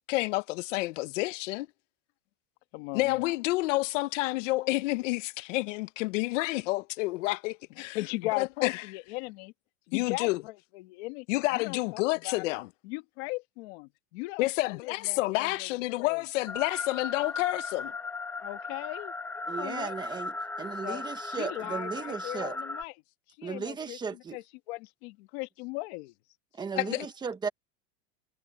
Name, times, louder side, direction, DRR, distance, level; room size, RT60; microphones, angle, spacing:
voice 1, 0.1-1.7 2.9-8.0 8.4-8.7 9.9-10.4 11.3-12.7 14.4-17.9 26.8-27.1, left 20 dB, 70° left, 0.8 m, -29 dB
voice 2, 2.7-3.3 7.8-9.5 9.9-11.3 11.5-12.6 12.8-15.7 16.0-16.2 18.4-19.9 20.8-22.9 23.4-26.1, left 23 dB, 55° left, 1.4 m, -38 dB
sound 1, 16.5-22.8, left 3 dB, 5° left, 0.7 m, -37 dB
voice 3, 19.5-22.6 23.4-24.4 26.6-27.5, right 5 dB, 10° right, 1.2 m, -36 dB
supercardioid pair, 170°, 39 cm